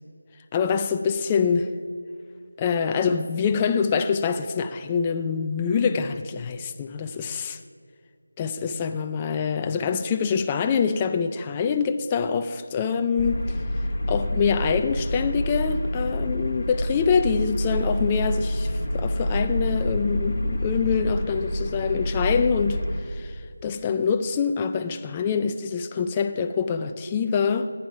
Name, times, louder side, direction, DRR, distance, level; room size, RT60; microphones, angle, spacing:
voice 1, 0.5-1.7 2.6-7.6 8.4-13.4 14.1-22.8 23.1-23.3 23.6-27.7, left 6 dB, 15° left, 0.3 m, -25 dB
sound 1, 13.2-23.0, equal, 40° left, 1.7 m, -27 dB
11.0 x 8.8 x 4.8 m
figure-of-eight pair, 170°, 0 cm